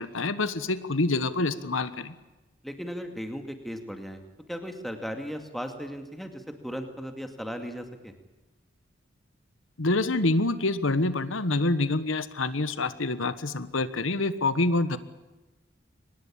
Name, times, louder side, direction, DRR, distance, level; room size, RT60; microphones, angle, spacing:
voice 1, 0.0-2.1 9.8-15.0, left 2 dB, 85° left, 13 dB, 1.3 m, -26 dB
voice 2, 2.6-4.2 4.5-8.1, equal, ahead, 5 dB, 2.2 m, -36 dB
24.0 x 20.0 x 8.8 m, 1.1 s
head